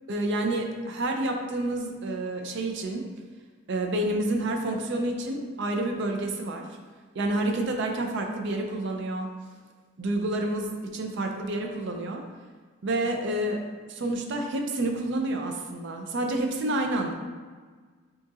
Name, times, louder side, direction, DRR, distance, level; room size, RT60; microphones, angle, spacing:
voice 1, 0.1-3.1 3.7-6.7 7.1-9.3 10.0-12.2 12.8-13.6 13.9-17.1, right 1 dB, 55° right, 3 dB, 0.4 m, -29 dB
5.4 x 2.8 x 2.4 m, 1.5 s
head